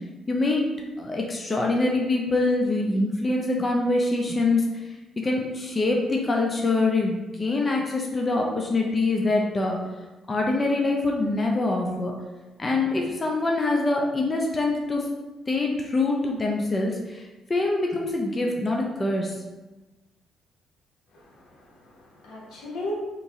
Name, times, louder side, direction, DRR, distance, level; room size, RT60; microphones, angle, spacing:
voice 1, 0.3-0.7 1.0-4.9 5.2-9.8 10.3-12.1 12.6-15.1 15.5-17.2 17.5-19.4, left 2 dB, 30° left, 0 dB, 0.5 m, -24 dB
voice 2, 21.1-22.9, left 1 dB, 80° left, -4 dB, 0.9 m, -37 dB
3.0 x 2.6 x 3.6 m, 1.1 s
cardioid pair, 90°, 0 cm